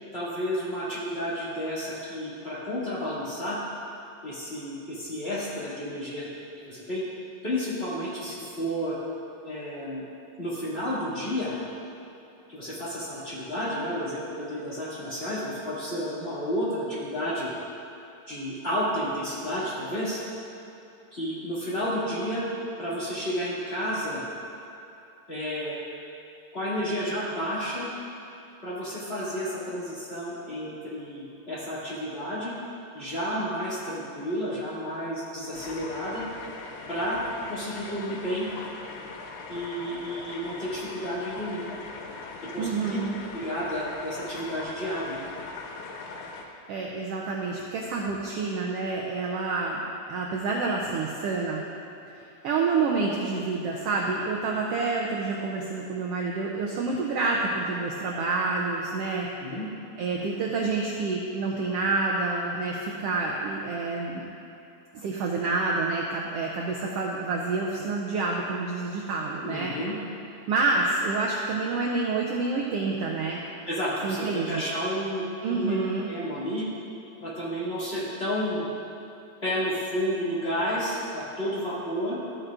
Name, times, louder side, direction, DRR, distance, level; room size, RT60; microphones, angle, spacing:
voice 1, 0.1-3.6 4.2-6.3 6.6-7.0 7.4-9.0 9.4-10.0 10.4-11.6 12.5-17.5 18.3-20.2 21.1-22.4 22.8-24.2 25.3-25.8 26.5-27.9 28.6-32.5 32.9-36.2 36.9-37.2 37.5-38.5 39.5-41.6 42.5-43.0 43.3-45.2 59.4-59.6 69.4-70.0 73.7-75.7 76.1-76.7 77.2-78.6 79.4-82.1, equal, 20° left, -11 dB, 2.4 m, -31 dB
sound 1, 35.5-46.5, left 4 dB, 80° left, 2.1 m, -40 dB
voice 2, 42.6-43.2 46.7-49.8 50.1-51.6 52.4-59.3 60.0-64.2 64.9-69.7 70.5-73.4 74.0-74.6 75.4-76.1, right 3 dB, 75° right, -2 dB, 1.4 m, -28 dB
13.5 x 9.0 x 2.5 m, 2.9 s
omnidirectional pair, 3.3 m